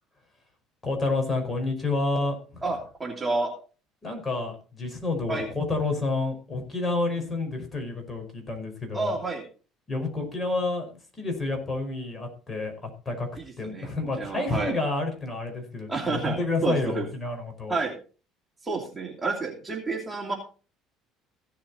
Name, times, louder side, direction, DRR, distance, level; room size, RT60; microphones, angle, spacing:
voice 1, 0.8-2.6 4.0-9.1 9.9-13.3 13.6-17.8, left 3 dB, 25° left, 3 dB, 5.1 m, -29 dB
voice 2, 2.6-3.5 5.3-5.5 8.9-9.4 13.4-13.5 13.7-13.9 14.2-14.8 15.9-16.4 16.6-17.1 17.7-17.9 18.6-20.4, right 3 dB, 20° right, 1 dB, 2.9 m, -29 dB
16.0 x 7.6 x 4.2 m, 0.37 s
supercardioid pair, 95°, 0 cm